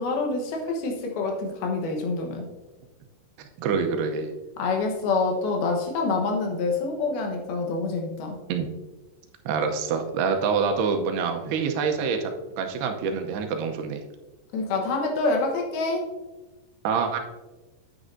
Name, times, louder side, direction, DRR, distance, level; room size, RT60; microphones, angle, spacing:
voice 1, 0.0-2.5 4.6-8.4 14.5-16.1, left 3 dB, 75° left, 2 dB, 2.9 m, -26 dB
voice 2, 3.4-4.3 8.5-8.7 9.5-12.3 12.6-14.0 16.8-17.2, right 5 dB, 80° right, 5 dB, 2.7 m, -26 dB
9.5 x 9.1 x 2.6 m, 1.1 s
omnidirectional pair, 4.7 m